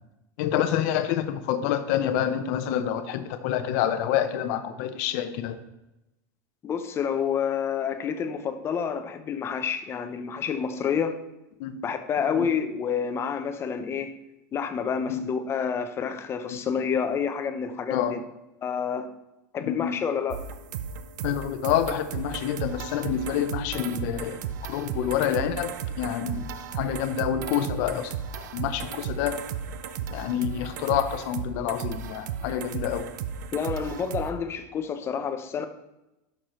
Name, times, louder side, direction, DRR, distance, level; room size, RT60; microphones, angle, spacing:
voice 1, 0.4-5.6 11.6-11.8 12.4-12.5 15.1-15.2 16.5-16.6 17.9-18.2 19.6-19.9 21.2-24.4 24.7-28.1 28.5-29.4 30.1-33.1, left 10 dB, 60° left, 10 dB, 0.8 m, -27 dB
voice 2, 6.6-11.2 11.8-14.1 14.5-18.2 18.6-19.1 19.5-20.4 33.5-35.7, left 7 dB, 25° left, 8 dB, 0.7 m, -28 dB
sound 1, 20.3-34.3, right 7 dB, 80° right, 0.6 m, -35 dB
11.5 x 5.9 x 3.1 m, 0.95 s
supercardioid pair, 140°, 10 cm